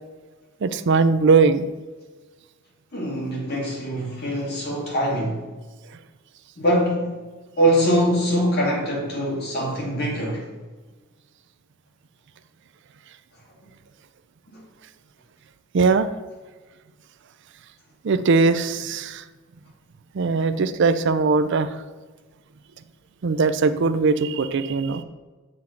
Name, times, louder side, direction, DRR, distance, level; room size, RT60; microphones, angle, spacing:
voice 1, 0.6-1.7 15.7-16.1 18.0-19.2 20.1-21.8 23.2-25.0, right 4 dB, 60° right, 12 dB, 0.4 m, -20 dB
voice 2, 2.9-5.4 6.6-7.1 7.6-10.5 14.5-14.6, equal, 55° left, -3 dB, 2.5 m, -23 dB
7.7 x 3.8 x 5.7 m, 1.3 s
head